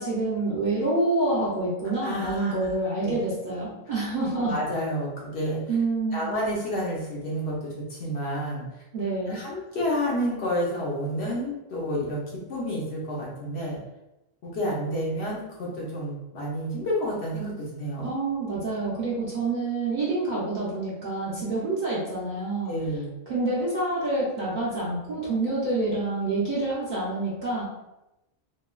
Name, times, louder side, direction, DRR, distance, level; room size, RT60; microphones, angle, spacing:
voice 1, 0.0-4.6 5.7-6.3 8.9-9.4 18.0-22.7 23.3-27.6, right 2 dB, 45° right, -8 dB, 0.7 m, -27 dB
voice 2, 2.0-2.8 3.0-3.1 4.3-5.1 5.3-5.6 6.1-8.6 9.3-12.2 12.5-13.8 14.4-18.1 21.3-21.4 22.7-23.2, equal, 60° left, -4 dB, 0.9 m, -30 dB
3.1 x 2.2 x 2.2 m, 0.94 s
omnidirectional pair, 1.4 m